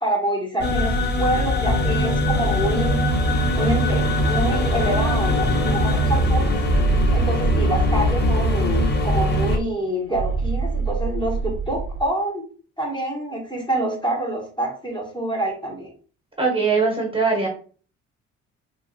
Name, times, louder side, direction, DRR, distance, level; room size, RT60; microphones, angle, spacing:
voice 1, 0.0-3.1 3.6-6.5 7.1-12.4 12.8-15.9, right 1 dB, 15° left, -2 dB, 1.0 m, -26 dB
sound 1, 0.6-9.6, equal, 35° left, 0.6 m, -21 dB
sound 2, 6.6-8.5 10.1-12.1, right 5 dB, 45° right, 0.7 m, -26 dB
voice 2, 16.4-17.5, right 4 dB, 20° right, 0 dB, 1.0 m, -21 dB
2.9 x 2.4 x 2.6 m, 0.41 s
cardioid pair, 90°, 30 cm